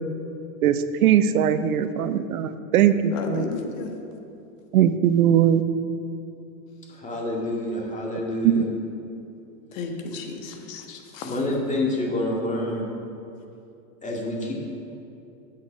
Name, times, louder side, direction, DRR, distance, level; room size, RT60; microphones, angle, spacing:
voice 1, 0.6-3.5 4.7-5.6 8.4-8.6, right 9 dB, 85° right, 12 dB, 0.7 m, -20 dB
voice 2, 3.1-3.9 9.7-11.3, left 4 dB, 65° left, 3 dB, 1.7 m, -33 dB
voice 3, 6.9-8.6 11.2-12.8 14.0-14.5, left 1 dB, 15° left, -2 dB, 2.2 m, -27 dB
8.3 x 7.5 x 6.2 m, 2.8 s
hypercardioid pair, 110°, 42 cm